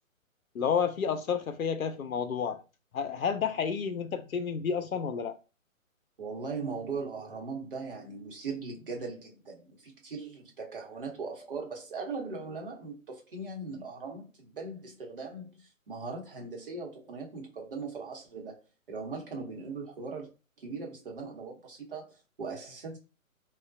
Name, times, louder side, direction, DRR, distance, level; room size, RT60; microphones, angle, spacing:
voice 1, 0.6-2.6 2.9-5.3, left 7 dB, 75° left, 0.5 m, -30 dB
voice 2, 6.2-18.6 18.9-20.3 20.6-23.0, right 4 dB, 40° right, 0.9 m, -39 dB
3.1 x 2.2 x 2.6 m
figure-of-eight pair, 135°, 42 cm